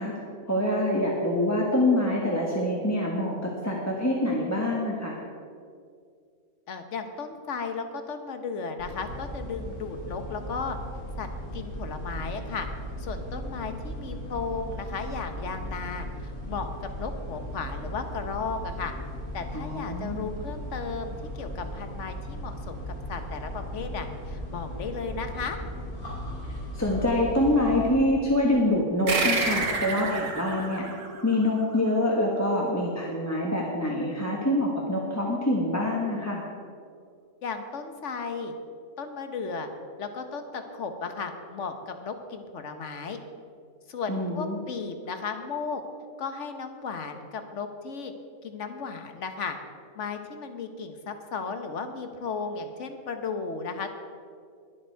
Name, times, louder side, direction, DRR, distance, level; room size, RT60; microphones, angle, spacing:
voice 1, 0.0-5.2 19.5-20.3 26.5-30.9 31.2-36.4 44.1-44.6, left 1 dB, 10° left, -3 dB, 1.3 m, -26 dB
voice 2, 6.7-10.8 11.2-12.7 13.0-18.9 19.3-25.6 37.4-38.5 39.0-39.7 40.0-43.2 43.9-45.8 46.2-48.1 48.4-49.6 49.9-53.9, left 5 dB, 55° left, 7 dB, 1.3 m, -35 dB
sound 1, 8.8-27.9, equal, 75° left, 3.1 m, -37 dB
sound 2, 29.1-32.0, right 3 dB, 80° right, 2.0 m, -29 dB
21.0 x 7.7 x 4.6 m, 2.3 s
omnidirectional pair, 1.6 m